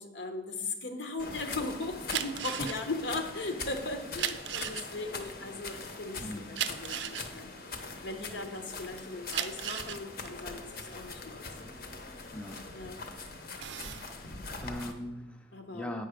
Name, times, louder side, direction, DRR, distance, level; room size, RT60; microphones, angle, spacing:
voice 1, 0.0-7.5 8.0-11.4 12.7-13.0 15.5-16.0, left 3 dB, 80° left, 6 dB, 1.0 m, -38 dB
sound 1, 1.2-14.9, left 3 dB, 55° left, 0.9 m, -42 dB
sound 2, 2.0-8.6 9.1-13.0 13.4-14.1, right 10 dB, 80° right, 0.5 m, -37 dB
voice 2, 14.6-16.1, left 1 dB, 5° left, 4 dB, 0.5 m, -40 dB
8.5 x 5.7 x 5.0 m, 1.0 s
head